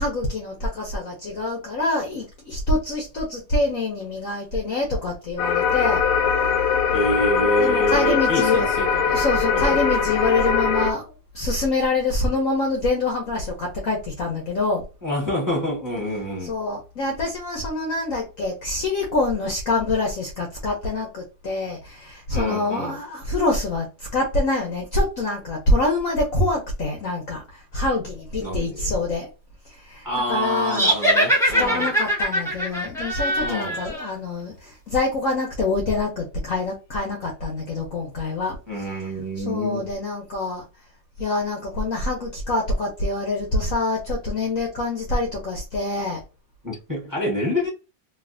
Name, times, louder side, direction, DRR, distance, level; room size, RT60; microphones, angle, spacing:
voice 1, 0.0-6.0 7.6-8.7 9.1-14.8 16.4-29.3 29.7-30.9 31.6-39.1 39.4-40.6 41.2-46.2, left 2 dB, 60° left, 1.0 m, -25 dB
sound 1, 5.4-10.9, left 6 dB, 85° left, 1.4 m, -21 dB
voice 2, 6.9-9.2 9.5-9.9 15.0-16.5 22.3-23.0 28.4-28.9 30.0-31.9 33.4-33.8 38.7-39.9 46.6-47.7, equal, 10° right, 1.1 m, -27 dB
sound 2, 30.7-34.1, equal, 5° left, 0.5 m, -22 dB
3.2 x 2.7 x 2.6 m
omnidirectional pair, 2.0 m